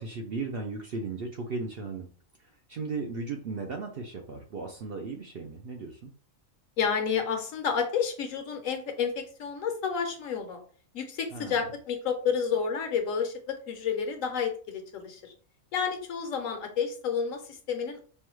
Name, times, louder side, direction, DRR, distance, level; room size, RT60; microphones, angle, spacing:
voice 1, 0.0-2.1 2.4-6.1 11.3-11.7, right 4 dB, 60° right, 2 dB, 0.6 m, -36 dB
voice 2, 6.8-10.6 10.9-15.3 15.7-18.0, left 6 dB, 70° left, 5 dB, 1.1 m, -30 dB
5.4 x 2.2 x 3.1 m, 0.43 s
omnidirectional pair, 1.5 m